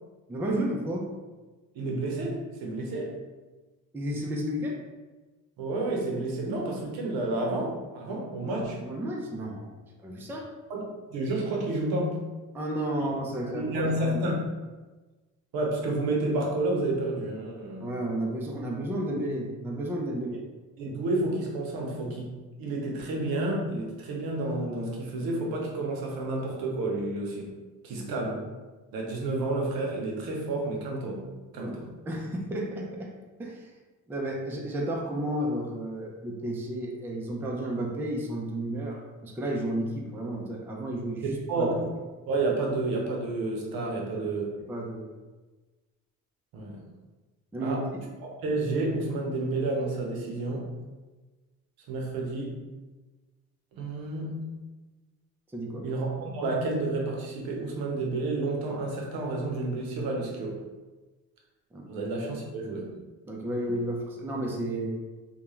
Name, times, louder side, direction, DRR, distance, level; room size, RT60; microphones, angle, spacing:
voice 1, 0.3-1.1 3.9-4.8 8.8-9.8 10.0-10.5 12.5-14.3 17.8-20.4 27.9-28.2 31.5-31.7 32.1-33.1 33.4-33.7 34.1-41.7 44.7-45.2 47.5-47.8 55.5-55.9 61.7-61.9 63.3-65.0, right 1 dB, 5° right, -1 dB, 0.3 m, -32 dB
voice 2, 1.7-3.2 5.6-8.8 10.7-12.2 13.0-13.1 13.5-14.5 15.5-17.9 20.8-22.3 22.6-27.5 27.8-28.5 28.9-31.3 31.5-31.9 41.5-41.9 42.3-44.6 46.5-46.8 47.6-47.8 48.4-50.7 51.9-52.6 53.7-54.5 55.8-60.6 61.9-63.0, right 2 dB, 80° right, -1 dB, 0.7 m, -30 dB
2.3 x 2.2 x 3.0 m, 1.2 s
cardioid pair, 95°, 35 cm